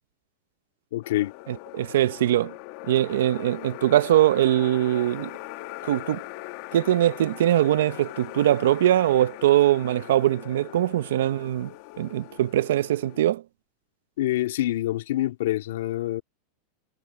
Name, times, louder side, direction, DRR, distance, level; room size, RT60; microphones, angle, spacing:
voice 1, 0.9-1.3 14.2-16.2, left 15 dB, 85° left, 2.2 m, -26 dB
sound 1, 1.0-13.2, left 20 dB, 55° left, 1.6 m, -41 dB
voice 2, 1.5-2.5 2.9-5.3 5.8-6.2 6.7-13.4, right 13 dB, 90° right, 0.6 m, -22 dB
supercardioid pair, 155°, 0 cm